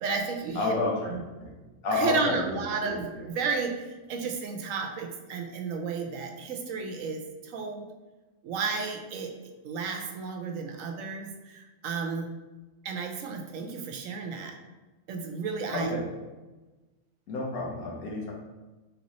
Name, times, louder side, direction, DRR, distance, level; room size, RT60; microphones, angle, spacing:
voice 1, 0.0-0.7 1.1-1.2 1.9-3.1 3.3-7.9 8.4-9.3 9.6-12.3 12.8-14.5 15.1-16.0, right 5 dB, 70° right, 3 dB, 1.0 m, -32 dB
voice 2, 0.5-1.5 1.8-2.4 2.8-3.3 15.7-16.1 17.3-18.3, left 2 dB, 85° left, -2 dB, 1.4 m, -30 dB
4.1 x 3.6 x 3.0 m, 1.2 s
omnidirectional pair, 1.5 m